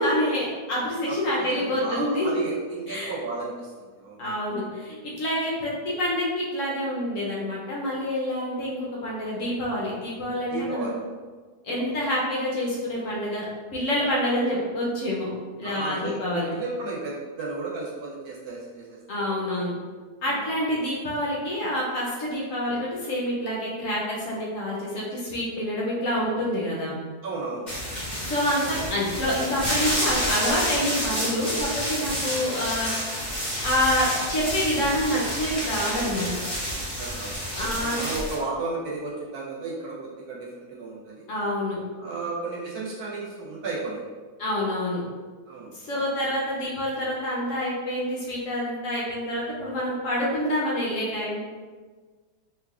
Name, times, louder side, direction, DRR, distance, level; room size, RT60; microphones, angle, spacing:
voice 1, 0.0-2.3 2.9-3.2 4.2-10.9 11.6-13.4 13.7-15.3 15.6-16.5 19.1-19.7 20.2-27.0 28.2-32.9 33.4-36.4 37.5-38.0 41.3-41.8 44.4-45.0 45.7-51.4, equal, 60° left, -5 dB, 1.0 m, -27 dB
voice 2, 1.1-4.2 10.5-11.0 11.8-11.9 15.6-19.3 20.3-20.4 27.2-27.7 37.0-41.2 42.0-44.0 45.5-45.7, right 3 dB, 75° right, -5 dB, 1.3 m, -34 dB
sound 1, 27.7-38.3, equal, 30° left, 1.5 m, -29 dB
3.4 x 2.9 x 2.4 m, 1.4 s
omnidirectional pair, 1.7 m